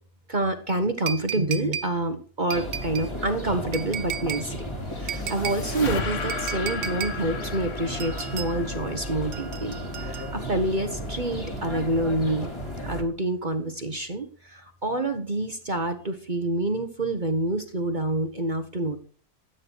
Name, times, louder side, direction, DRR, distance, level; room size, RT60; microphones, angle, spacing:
voice 1, 0.3-4.6 4.9-12.5 12.9-19.0, right 2 dB, 40° right, 7 dB, 1.5 m, -27 dB
sound 1, 1.1-1.9 2.5-3.1 3.7-4.5 5.1-5.6 6.3-7.2 8.0-8.5 9.3-10.5 11.6-11.7, right 9 dB, 70° right, 1.2 m, -34 dB
sound 2, 2.5-13.0, equal, 20° left, 3.6 m, -34 dB
sound 3, 4.6-10.0, left 5 dB, 70° left, 1.8 m, -36 dB
13.5 x 9.5 x 4.6 m, 0.41 s
omnidirectional pair, 1.3 m